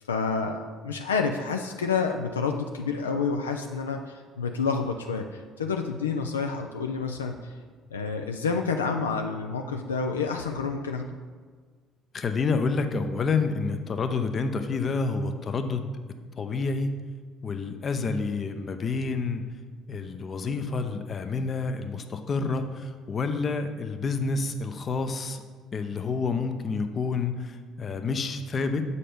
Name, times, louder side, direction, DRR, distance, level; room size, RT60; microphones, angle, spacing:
voice 1, 0.1-7.5 7.9-11.2, left 5 dB, 90° left, 4 dB, 0.3 m, -29 dB
voice 2, 12.1-15.9 16.4-16.9 17.4-19.4 19.9-25.4 25.7-28.9, left 4 dB, 40° left, 7 dB, 0.6 m, -28 dB
6.6 x 4.2 x 5.1 m, 1.5 s
hypercardioid pair, 55°, 0 cm